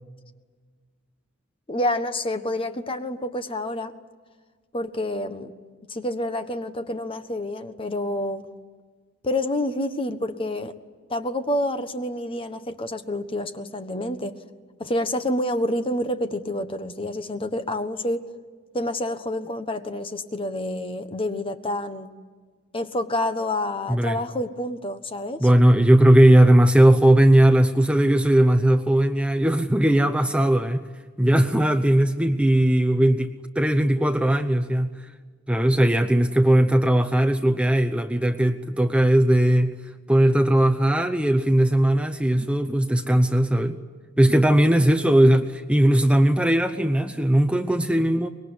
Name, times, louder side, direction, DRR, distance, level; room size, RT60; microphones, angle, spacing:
voice 1, 1.7-3.9 4.7-5.5 5.9-8.4 9.2-10.7 11.1-14.3 14.8-18.2 18.7-22.1 22.7-25.5, left 1 dB, 25° left, 9 dB, 1.3 m, -28 dB
voice 2, 25.4-30.8 31.2-35.0 35.5-39.8 40.1-43.8 44.2-48.3, right 1 dB, 5° right, 8 dB, 0.8 m, -18 dB
24.5 x 21.0 x 9.8 m, 1.5 s
head